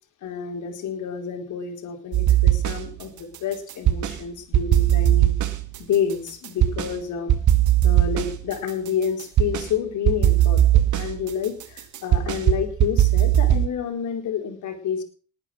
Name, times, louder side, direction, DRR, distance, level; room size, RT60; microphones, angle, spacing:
voice 1, 0.2-5.5 5.9-7.3 7.8-15.0, left 7 dB, 80° left, 4 dB, 4.4 m, -29 dB
sound 1, 2.1-3.0 3.3-4.2 4.5-6.9 7.3-9.7 10.1-13.7, right 12 dB, 75° right, 2.0 m, -19 dB
20.0 x 9.7 x 6.3 m, 0.42 s
cardioid pair, 90°, 30 cm